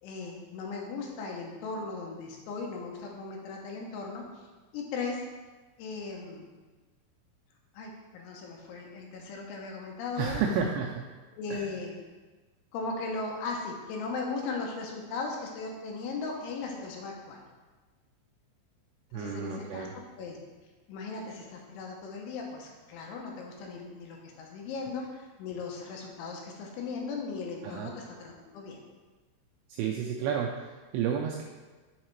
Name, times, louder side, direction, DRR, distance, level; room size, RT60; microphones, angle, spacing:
voice 1, 0.0-4.5 4.7-5.3 5.8-6.5 7.7-10.5 11.3-12.0 12.7-17.4 19.1-20.4 20.9-28.8, left 4 dB, 80° left, 0 dB, 3.2 m, -37 dB
voice 2, 10.2-11.0 11.5-11.7 19.1-19.9 27.6-27.9 29.7-31.4, right 7 dB, 90° right, 0 dB, 2.5 m, -31 dB
7.3 x 4.7 x 4.5 m, 1.3 s
omnidirectional pair, 5.7 m